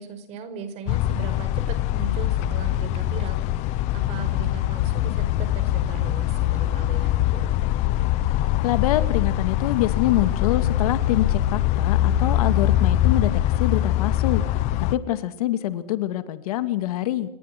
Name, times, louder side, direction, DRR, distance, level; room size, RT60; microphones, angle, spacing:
voice 1, 0.0-3.4 3.9-7.5, right 5 dB, 35° right, 9 dB, 5.4 m, -38 dB
sound 1, 0.9-15.0, left 13 dB, 35° left, 1.2 m, -23 dB
voice 2, 8.6-13.3 13.6-14.4 14.9-17.4, left 14 dB, 70° left, 11 dB, 2.4 m, -25 dB
29.0 x 22.0 x 6.1 m, 0.75 s
supercardioid pair, 165°, 20 cm